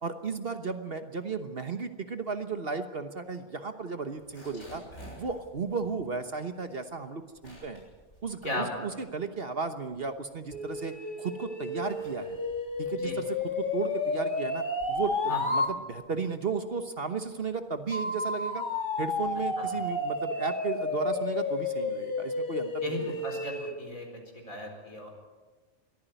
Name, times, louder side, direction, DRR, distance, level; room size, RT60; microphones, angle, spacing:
voice 1, 0.0-4.8 5.1-7.8 8.2-12.4 12.8-18.6 19.0-23.1, right 5 dB, 45° right, 8 dB, 1.3 m, -34 dB
sound 1, 4.1-9.3 9.7-11.1 11.6-20.4, right 1 dB, 50° left, 7.4 m, -54 dB
voice 2, 8.4-8.9 13.0-13.2 15.3-15.4 19.6-19.7 22.8-24.1 24.3-25.1, left 1 dB, 70° left, 3 dB, 4.7 m, -36 dB
sound 2, 10.5-15.7 17.9-23.8, left 2 dB, 35° left, 2.0 m, -31 dB
22.0 x 14.5 x 9.2 m, 1.3 s
omnidirectional pair, 1.5 m